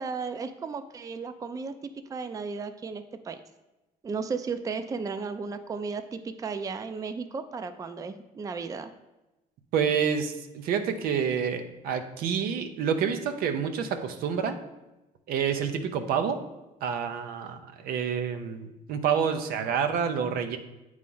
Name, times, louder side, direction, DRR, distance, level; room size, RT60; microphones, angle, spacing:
voice 1, 0.0-3.4 4.0-8.9, right 5 dB, 25° right, 9 dB, 0.4 m, -34 dB
voice 2, 9.7-14.6 15.3-16.4 16.8-20.6, right 7 dB, 85° right, 8 dB, 0.7 m, -28 dB
8.6 x 3.2 x 5.4 m, 1.0 s
cardioid pair, 125°, 15 cm